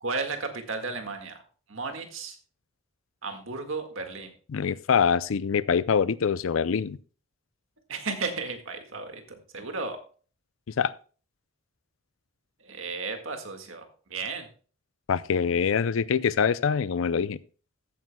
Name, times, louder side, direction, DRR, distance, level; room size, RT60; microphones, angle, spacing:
voice 1, 0.0-1.4 1.7-2.4 3.2-4.3 7.9-10.0 12.6-13.8 14.1-14.5, right 4 dB, 80° right, 5 dB, 1.8 m, -34 dB
voice 2, 4.5-7.0 10.8-10.9 15.1-17.4, left 6 dB, 80° left, 18 dB, 0.5 m, -24 dB
14.5 x 9.1 x 2.3 m, 0.39 s
head